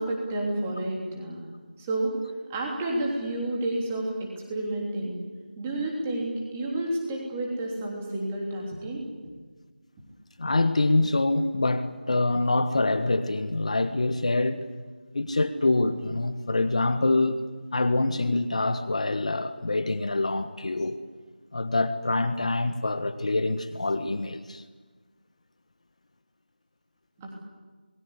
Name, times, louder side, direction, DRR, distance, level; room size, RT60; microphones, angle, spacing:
voice 1, 0.0-1.4 1.8-2.1 2.5-5.2 5.6-9.0 27.2-27.4, right 1 dB, 10° right, 3.2 m, -30 dB
voice 2, 10.4-14.6 15.1-17.4 17.7-21.0 21.5-24.6, left 2 dB, 40° left, 1.5 m, -25 dB
27.5 x 21.5 x 8.3 m
figure-of-eight pair, 175°, 5 cm